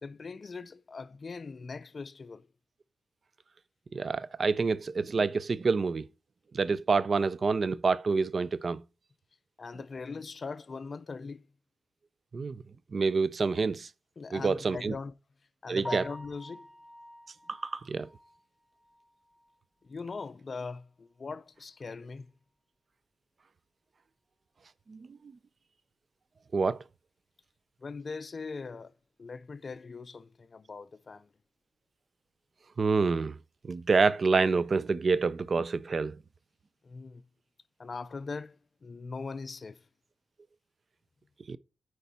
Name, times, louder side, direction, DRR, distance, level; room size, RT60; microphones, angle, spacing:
voice 1, 0.0-2.5 9.6-11.4 14.2-15.1 15.6-16.7 19.8-22.3 27.8-28.9 29.2-31.3 36.8-37.2 37.8-39.8, left 4 dB, 40° left, 0.5 m, -41 dB
voice 2, 3.9-6.0 6.5-8.8 12.3-12.6 12.9-13.9 14.3-14.9 15.7-16.0 17.5-18.1 24.9-25.2 26.5-26.8 32.8-33.4 33.6-36.2 41.5-41.6, right 4 dB, 45° right, 0.4 m, -27 dB
Piano, 15.8-19.8 20.2-20.3 20.8-20.9 21.2-21.3 24.4-24.5 33.0-33.2, left 1 dB, 10° right, 1.0 m, -47 dB
9.3 x 4.6 x 4.2 m
wide cardioid pair, 115°, 0 cm